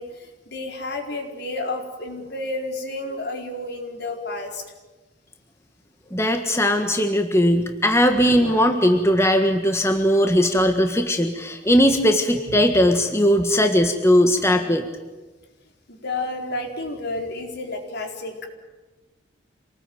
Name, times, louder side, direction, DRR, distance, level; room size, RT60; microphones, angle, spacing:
voice 1, 0.0-4.6 8.1-8.8 15.9-18.5, left 2 dB, 60° left, 3 dB, 4.4 m, -31 dB
voice 2, 6.1-14.8, equal, 15° left, 5 dB, 1.6 m, -19 dB
27.0 x 19.5 x 9.3 m, 1.2 s
head